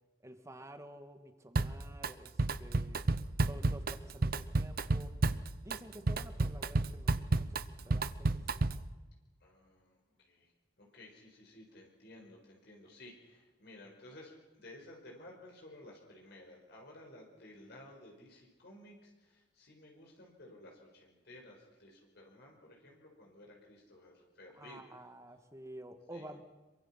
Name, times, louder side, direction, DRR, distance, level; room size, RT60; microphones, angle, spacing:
voice 1, 0.2-2.3 2.6-3.0 3.5-5.1 5.6-8.8 24.6-26.4, right 1 dB, 15° right, 7 dB, 1.8 m, -51 dB
Drum kit, 1.6-2.1 2.4-8.9, right 2 dB, 55° right, 0.8 m, -32 dB
voice 2, 3.0-3.7 9.4-24.8 26.1-26.3, left 1 dB, 65° left, -1 dB, 5.1 m, -55 dB
26.5 x 23.5 x 5.9 m, 1.2 s
head